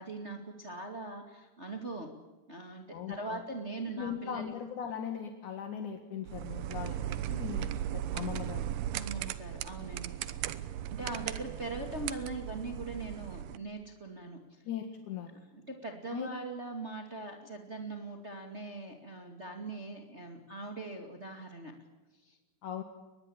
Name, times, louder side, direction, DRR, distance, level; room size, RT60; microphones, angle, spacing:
voice 1, 0.0-2.1 2.5-4.4 8.9-10.6 10.9-14.6 15.5-21.8 22.2-22.4, right 2 dB, 55° right, 4 dB, 0.7 m, -41 dB
voice 2, 2.9-3.4 3.9-8.7 14.6-15.3 16.1-16.3 22.6-22.8, left 8 dB, 60° left, 6 dB, 2.2 m, -39 dB
sound 1, 6.3-13.6, right 11 dB, 80° right, 2.3 m, -37 dB
24.0 x 21.0 x 8.8 m, 1.2 s
omnidirectional pair, 5.9 m